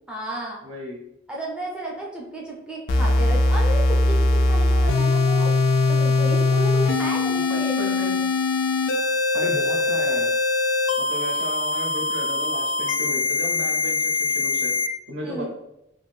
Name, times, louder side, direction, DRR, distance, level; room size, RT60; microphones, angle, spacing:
voice 1, 0.1-0.6 1.3-5.5 5.9-7.8 15.2-15.4, right 1 dB, 5° right, -3 dB, 0.4 m, -33 dB
voice 2, 0.6-1.0 7.3-8.2 9.3-10.3 11.0-14.8 15.1-15.5, equal, 70° right, 0 dB, 0.6 m, -34 dB
sound 1, 2.9-14.9, left 3 dB, 70° left, 0.4 m, -21 dB
2.5 x 2.5 x 3.2 m, 0.84 s
head